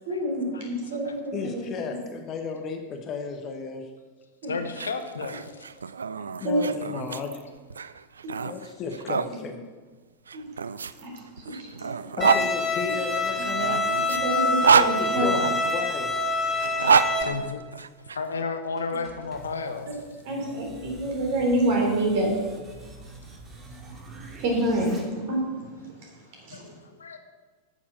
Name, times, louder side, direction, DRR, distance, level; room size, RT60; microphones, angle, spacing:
voice 1, 0.1-1.6 4.4-4.5 6.4-6.6 8.2-8.4 9.2-9.4 10.3-10.5 11.0-11.1 11.5-11.9 14.2-15.3 20.3-22.3 24.4-25.0 25.3-25.7 26.5-26.6, right 1 dB, 50° right, -1 dB, 3.6 m, -27 dB
voice 2, 1.3-3.8 6.4-7.4 8.4-9.6 12.2-13.8 14.7-16.1, left 5 dB, 30° left, 5 dB, 1.2 m, -34 dB
voice 3, 4.5-5.7 15.1-15.5 17.2-17.7 18.1-20.2 26.5-27.2, left 4 dB, 70° left, 8 dB, 0.9 m, -33 dB
Small Dog Barking and Sneezing, 4.6-9.3 10.3-12.5 13.4-15.7 16.5-18.2, right 6 dB, 70° right, 0.3 m, -26 dB
Bowed string instrument, 12.2-17.2, left 2 dB, 10° left, 1.8 m, -26 dB
sound 1, 18.8-25.0, right 2 dB, 20° right, 2.2 m, -45 dB
8.7 x 7.5 x 6.5 m, 1.4 s
figure-of-eight pair, 90°, 0 cm